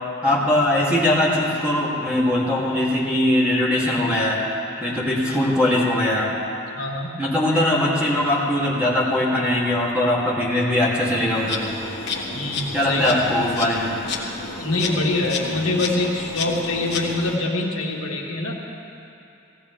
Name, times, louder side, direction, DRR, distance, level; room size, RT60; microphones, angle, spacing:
voice 1, 0.2-4.4 4.8-6.3 7.2-11.7 12.7-13.9, left 1 dB, 5° right, -7 dB, 2.7 m, -21 dB
voice 2, 6.7-7.1 12.3-13.0 14.6-18.6, left 2 dB, 80° left, -2 dB, 1.7 m, -25 dB
Insect, 11.3-17.4, left 3 dB, 50° left, 1.6 m, -31 dB
17.0 x 16.5 x 3.5 m, 2.7 s
head